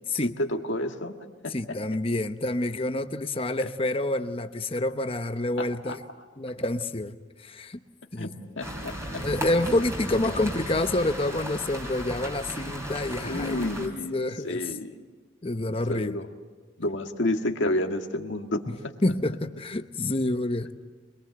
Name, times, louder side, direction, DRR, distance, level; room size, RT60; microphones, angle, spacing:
voice 1, 0.2-1.1 1.4-1.8 5.6-6.0 8.2-9.2 13.2-14.9 15.6-16.3 16.8-18.6, left 1 dB, 70° left, 4 dB, 1.8 m, -30 dB
voice 2, 1.5-6.0 6.4-7.8 8.1-8.3 9.2-14.7 15.4-16.2 19.0-20.7, left 2 dB, 30° left, 9 dB, 0.9 m, -28 dB
sound 1, 8.6-13.9, equal, 15° right, 3.2 m, -35 dB
25.5 x 22.0 x 7.9 m, 1.4 s
head